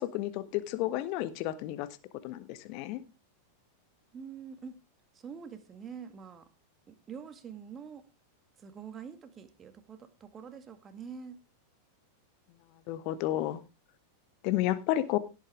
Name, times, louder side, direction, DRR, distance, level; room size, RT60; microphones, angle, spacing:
voice 1, 0.0-1.9 2.2-3.0 12.9-13.6 14.4-15.2, left 14 dB, 45° left, 1.2 m, -31 dB
voice 2, 4.1-4.8 5.1-6.5 6.9-8.0 8.6-11.4, right 6 dB, 25° right, 1.9 m, -45 dB
17.0 x 9.0 x 3.5 m
figure-of-eight pair, 90°, 0 cm